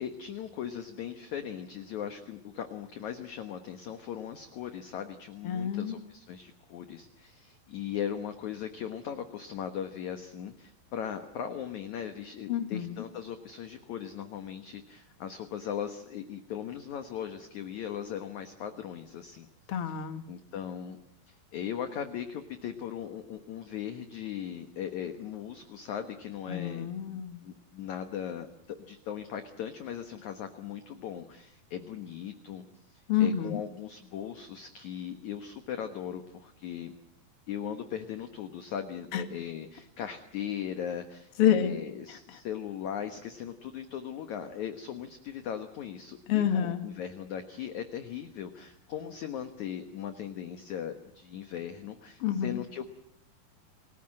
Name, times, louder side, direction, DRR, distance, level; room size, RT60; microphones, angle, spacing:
voice 1, 0.0-19.5 20.3-21.0 21.3-26.9 27.4-32.6 32.9-36.9 37.5-52.9, left 9 dB, 60° left, 7 dB, 2.2 m, -38 dB
voice 2, 5.4-6.0 12.5-13.1 19.7-20.2 26.5-27.4 33.1-33.6 39.1-39.2 41.4-41.7 46.3-46.9 52.2-52.6, left 9 dB, 45° left, 8 dB, 2.2 m, -28 dB
30.0 x 20.0 x 7.6 m, 0.73 s
omnidirectional pair, 4.6 m